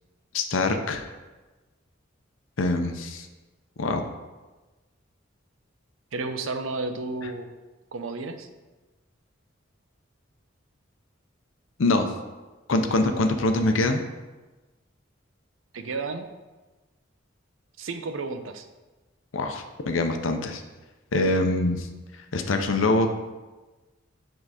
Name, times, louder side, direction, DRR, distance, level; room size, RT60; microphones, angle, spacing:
voice 1, 0.3-1.0 2.6-3.3 3.8-4.0 11.8-12.1 12.7-14.0 19.3-20.6 21.1-21.9 22.3-23.1, left 2 dB, 90° left, 6 dB, 0.6 m, -24 dB
voice 2, 6.1-7.5 7.9-8.5 15.7-16.3 17.8-18.6, right 3 dB, 85° right, 8 dB, 0.6 m, -32 dB
7.3 x 3.8 x 4.9 m, 1.2 s
head